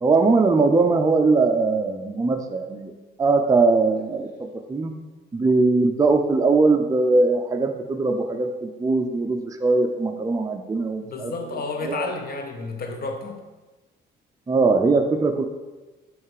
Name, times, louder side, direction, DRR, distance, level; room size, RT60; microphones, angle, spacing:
voice 1, 0.0-2.9 3.2-4.9 5.3-11.3 11.8-12.1 14.5-15.4, right 3 dB, 15° right, 5 dB, 0.5 m, -21 dB
voice 2, 11.0-13.4, left 3 dB, 50° left, 4 dB, 0.8 m, -31 dB
6.4 x 3.3 x 4.7 m, 1.2 s
cardioid pair, 90°, 20 cm